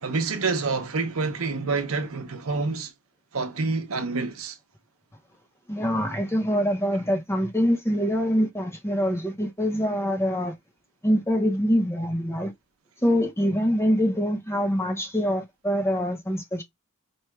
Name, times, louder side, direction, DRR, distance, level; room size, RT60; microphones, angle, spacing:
voice 1, 0.0-2.9 3.3-4.6, right 4 dB, 70° right, 0.8 m, -27 dB
voice 2, 5.7-10.5 11.0-12.5 13.0-16.6, equal, 10° left, 0.8 m, -24 dB
4.7 x 2.3 x 3.1 m
head